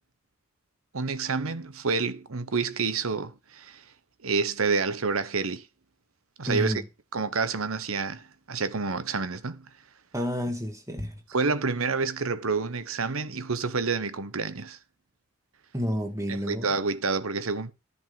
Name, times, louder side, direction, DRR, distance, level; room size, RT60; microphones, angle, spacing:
voice 1, 0.9-3.8 4.2-5.7 6.4-6.8 7.1-9.7 11.3-14.8 16.3-17.7, right 4 dB, 80° right, 1.1 m, -28 dB
voice 2, 6.5-6.8 10.1-11.2 15.7-16.7, equal, 15° right, 2.1 m, -30 dB
11.0 x 5.4 x 7.9 m
head